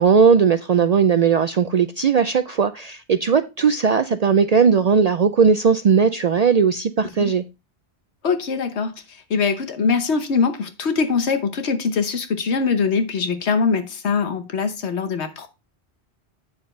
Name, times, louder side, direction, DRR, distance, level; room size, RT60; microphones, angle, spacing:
voice 1, 0.0-7.4, right 6 dB, 60° right, 0.4 m, -18 dB
voice 2, 8.2-15.5, left 5 dB, 75° left, 1.3 m, -22 dB
8.8 x 6.6 x 3.2 m
omnidirectional pair, 1.1 m